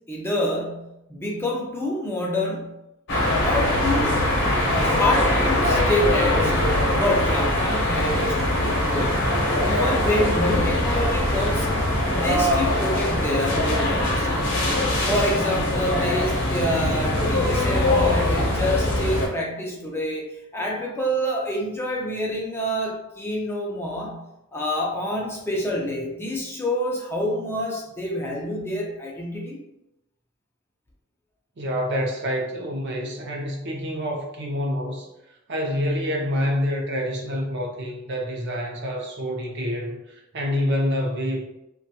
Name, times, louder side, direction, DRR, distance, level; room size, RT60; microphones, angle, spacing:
voice 1, 0.1-2.8 3.4-4.1 4.7-9.1 9.6-11.7 12.1-14.5 15.1-20.3 20.5-24.2 24.5-29.6, left 1 dB, 10° left, -2 dB, 0.4 m, -27 dB
sound 1, 3.1-19.3, left 1 dB, 55° left, 0.8 m, -22 dB
voice 2, 31.6-35.1 35.5-41.4, equal, 55° right, 0 dB, 0.6 m, -27 dB
2.9 x 2.2 x 2.7 m, 0.91 s
head